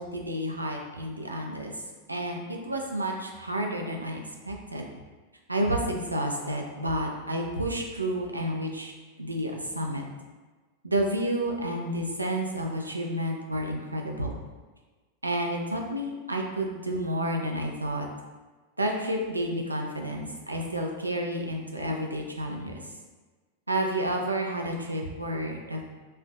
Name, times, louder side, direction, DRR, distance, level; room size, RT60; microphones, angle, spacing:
voice 1, 0.0-1.8 2.1-4.8 5.5-8.9 9.2-10.0 10.8-14.4 15.2-18.1 18.8-22.7 23.7-25.8, right 1 dB, 85° right, 1 dB, 0.4 m, -30 dB
4.3 x 2.5 x 2.2 m, 1.3 s
figure-of-eight pair, 90°, 0 cm